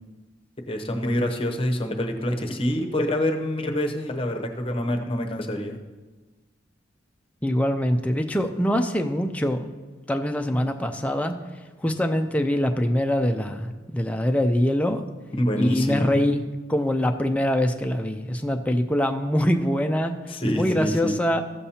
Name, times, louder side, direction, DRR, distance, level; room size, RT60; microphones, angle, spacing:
voice 1, 0.7-5.8 15.4-16.2 20.3-21.1, equal, 30° left, 4 dB, 0.8 m, -26 dB
voice 2, 7.4-9.7 10.1-11.3 11.8-15.0 15.6-16.4 16.7-20.1 20.5-21.4, left 1 dB, 5° left, 5 dB, 0.4 m, -23 dB
14.5 x 7.1 x 2.8 m, 1.2 s
head